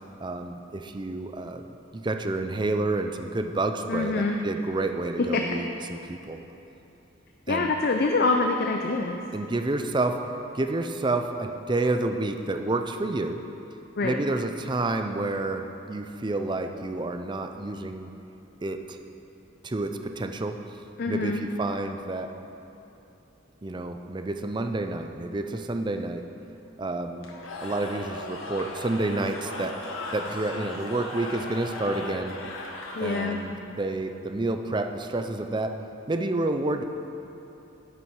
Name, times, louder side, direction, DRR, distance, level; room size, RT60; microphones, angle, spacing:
voice 1, 0.2-1.6 1.9-6.4 7.5-7.7 9.3-13.4 14.0-18.1 18.6-19.0 19.6-20.6 21.1-22.3 23.6-26.3 26.8-27.3 27.6-29.8 30.1-32.4 33.0-35.8 36.1-36.8, right 2 dB, 20° right, 6 dB, 0.5 m, -29 dB
voice 2, 3.9-4.4 5.2-5.4 7.5-9.2 14.0-14.2 21.0-21.4 33.0-33.4, left 3 dB, 50° left, 3 dB, 0.5 m, -25 dB
Cheering / Crowd, 27.2-33.6, left 2 dB, 80° left, 1.5 m, -37 dB
11.0 x 10.0 x 4.7 m, 2.9 s
head